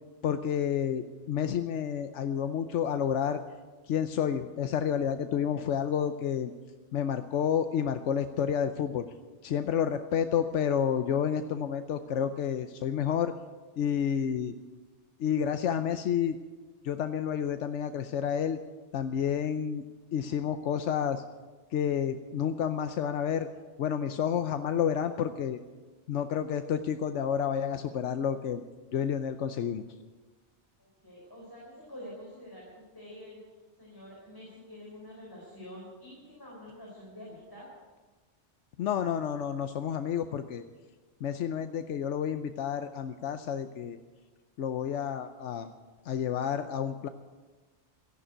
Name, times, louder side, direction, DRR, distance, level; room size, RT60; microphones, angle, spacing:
voice 1, 0.2-3.4 3.8-6.5 6.9-9.1 9.4-13.3 13.8-14.5 15.2-16.4 16.8-18.6 18.9-19.8 20.1-21.2 21.7-23.5 23.8-25.6 26.1-28.6 28.9-29.8 38.8-40.6 41.2-44.0 44.6-45.7 46.0-47.1, left 8 dB, 90° left, 9 dB, 1.0 m, -30 dB
voice 2, 30.8-33.4 33.8-37.7, left 1 dB, 20° left, -4 dB, 4.3 m, -47 dB
14.0 x 11.0 x 8.8 m, 1.3 s
omnidirectional pair, 1.2 m